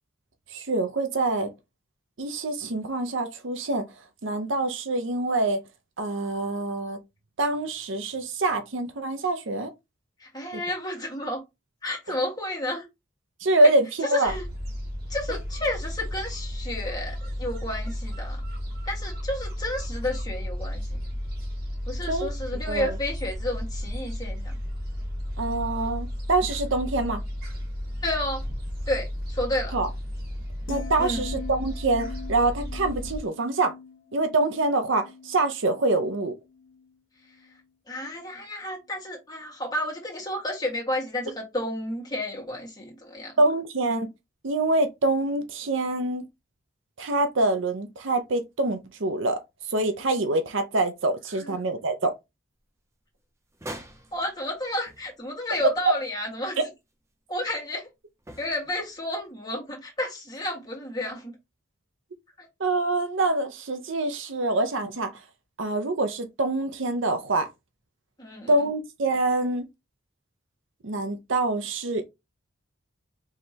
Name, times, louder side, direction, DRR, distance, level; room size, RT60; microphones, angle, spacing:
voice 1, 0.5-1.5 2.2-3.8 4.2-5.6 6.0-7.0 7.4-9.7 10.5-10.6 13.4-14.3 22.1-22.3 22.7-22.9 25.4-27.2 29.7-29.9 30.7-33.7 34.1-36.4 43.4-44.1 44.4-46.2 47.0-49.4 49.7-52.1 62.6-65.1 65.6-67.5 68.5-69.6 70.8-72.0, right 2 dB, 65° right, 0.7 m, -25 dB
voice 2, 10.2-11.4 11.8-12.9 13.6-13.7 14.0-14.5 15.1-18.4 18.8-20.8 21.9-24.6 28.0-28.4 28.9-29.7 31.0-31.3 37.9-43.3 51.4-51.6 54.1-56.7 57.3-57.9 58.4-61.3 62.4-62.5 68.2-68.6, left 1 dB, 20° left, 1.7 m, -31 dB
Gull seagull, 14.3-33.2, equal, 50° right, 1.7 m, -33 dB
sound 1, 30.7-37.0 37.3-37.6, left 5 dB, 70° left, 1.0 m, -43 dB
sound 2, 53.5-55.7 55.9-56.0 58.2-59.3, right 1 dB, 15° right, 0.6 m, -44 dB
4.7 x 3.3 x 2.8 m
head